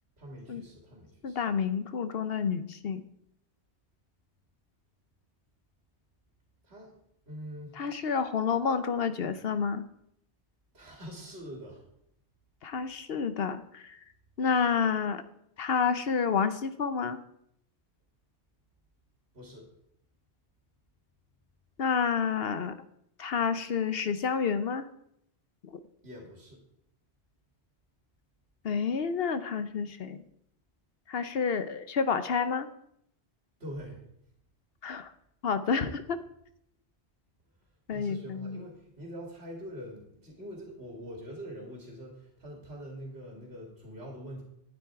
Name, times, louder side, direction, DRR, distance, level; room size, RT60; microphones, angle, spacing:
voice 1, 0.2-1.4 6.6-6.9 7.3-7.8 10.7-11.8 19.3-19.6 26.0-26.6 33.6-34.0 37.9-44.4, equal, 70° right, 0 dB, 2.9 m, -44 dB
voice 2, 1.2-3.1 7.7-9.9 12.6-14.0 14.4-15.2 15.6-17.2 21.8-22.8 23.2-24.9 25.6-25.8 28.6-30.2 31.1-32.7 34.8-35.1 35.4-36.2 37.9-38.6, left 6 dB, 65° left, 12 dB, 0.9 m, -29 dB
12.0 x 9.2 x 4.7 m, 0.73 s
omnidirectional pair, 1.1 m